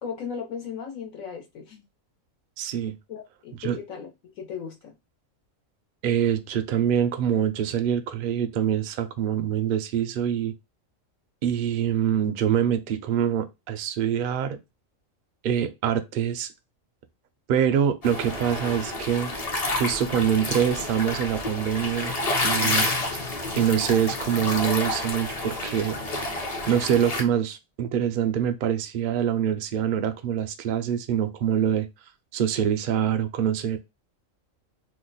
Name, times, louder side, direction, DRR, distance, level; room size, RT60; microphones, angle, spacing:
voice 1, 0.0-1.8 3.1-4.1 4.3-4.9 22.6-23.0, left 7 dB, 80° left, 1.3 m, -36 dB
voice 2, 2.6-2.9 3.6-3.8 6.0-10.5 11.4-14.6 15.4-16.5 17.5-19.3 19.8-22.1 22.4-22.9 23.6-26.0 26.7-31.9 32.3-33.8, right 9 dB, 65° right, 0.5 m, -25 dB
sound 1, 18.0-27.2, left 2 dB, 40° left, 0.6 m, -29 dB
2.9 x 2.2 x 3.8 m
omnidirectional pair, 1.4 m